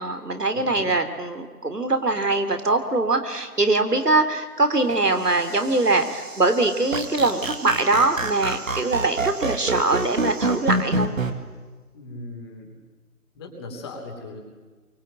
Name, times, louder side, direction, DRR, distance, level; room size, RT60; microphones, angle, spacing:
voice 1, 0.0-11.1, right 2 dB, 85° right, 7 dB, 3.5 m, -22 dB
voice 2, 0.5-0.9 11.9-12.7 13.3-14.4, left 2 dB, 15° left, 0 dB, 3.1 m, -38 dB
sound 1, 4.6-11.3, right 4 dB, 40° right, 3.6 m, -44 dB
sound 2, 6.9-11.3, right 2 dB, 60° right, 2.5 m, -24 dB
24.0 x 24.0 x 9.1 m, 1.3 s
figure-of-eight pair, 160°, 46 cm